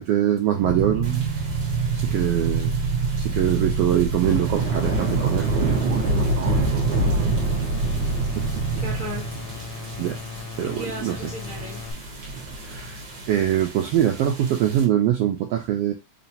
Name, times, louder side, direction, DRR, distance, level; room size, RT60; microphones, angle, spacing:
voice 1, 0.0-1.3 1.9-2.7 3.2-6.8 8.4-8.6 10.0-10.2 10.6-11.3 12.6-15.9, right 11 dB, 85° right, 1.4 m, -24 dB
sound 1, 0.6-10.2, right 5 dB, 65° right, 1.7 m, -26 dB
sound 2, 1.0-14.8, right 1 dB, 45° right, 1.2 m, -30 dB
sound 3, 4.5-11.9, left 6 dB, 80° left, 1.5 m, -38 dB
voice 2, 7.0-7.6 8.8-9.3 9.7-9.8 10.8-11.8, left 1 dB, 60° left, 0.8 m, -36 dB
4.2 x 3.0 x 2.7 m
omnidirectional pair, 3.3 m